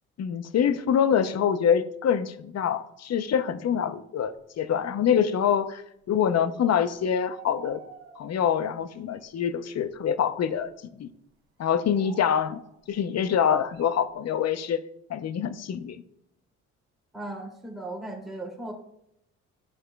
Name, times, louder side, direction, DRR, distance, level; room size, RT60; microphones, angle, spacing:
voice 1, 0.2-5.8 6.1-7.8 8.2-11.1 11.6-12.6 12.9-14.8 15.1-16.0, left 8 dB, 45° left, 13 dB, 0.7 m, -25 dB
sound 1, 6.6-6.9 7.2-8.6 9.1-9.2 9.8-10.4 11.6-13.0 13.7-13.9, right 6 dB, 80° right, 1.2 m, -48 dB
voice 2, 17.1-18.7, right 2 dB, ahead, -1 dB, 2.6 m, -37 dB
11.5 x 6.4 x 2.3 m, 0.75 s
hypercardioid pair, 55°, 35 cm